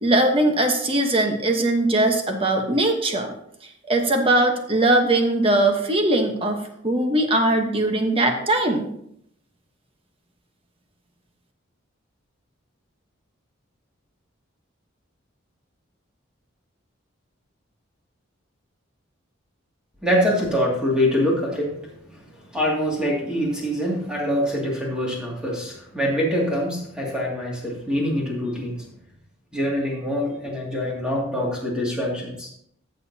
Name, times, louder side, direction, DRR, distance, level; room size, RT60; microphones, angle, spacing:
voice 1, 0.0-3.3 3.9-8.9, right 1 dB, 25° right, 4 dB, 1.1 m, -20 dB
voice 2, 20.0-21.8 22.1-22.2 22.5-28.8 29.5-32.5, equal, 5° right, -4 dB, 2.4 m, -24 dB
14.0 x 6.6 x 2.8 m, 0.70 s
head